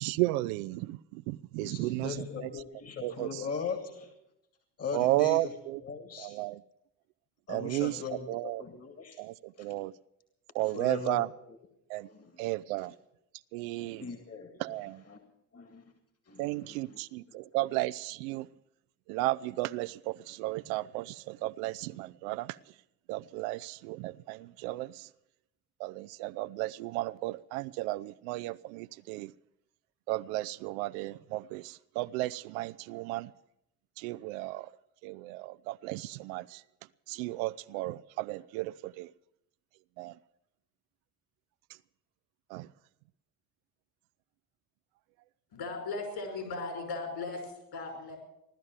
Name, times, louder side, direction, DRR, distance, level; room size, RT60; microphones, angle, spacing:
voice 1, 0.0-2.5 3.0-3.4 4.9-5.8 6.2-6.6 7.5-8.0 8.3-8.6 9.2-9.9 10.5-11.3 11.9-12.1 12.4-12.9 13.5-14.0 14.6-15.0 16.4-18.5 19.1-22.6 23.1-25.1 25.8-29.3 30.1-33.3 34.0-34.7 35.0-36.6 37.1-39.1 40.0-40.2 42.5-42.7, right 18 dB, 65° right, 0.5 m, -34 dB
voice 2, 1.6-4.1 4.8-6.4 7.5-9.2 9.6-9.7 10.6-11.2 11.5-11.6 12.1-12.4 12.8-12.9 13.8-14.8 15.1-15.2 15.5-15.9 16.3-17.0 17.3-17.4, left 5 dB, 30° left, 2.1 m, -40 dB
voice 3, 45.5-48.2, left 3 dB, 55° left, 5.5 m, -37 dB
16.0 x 12.0 x 7.2 m
figure-of-eight pair, 55°, 47 cm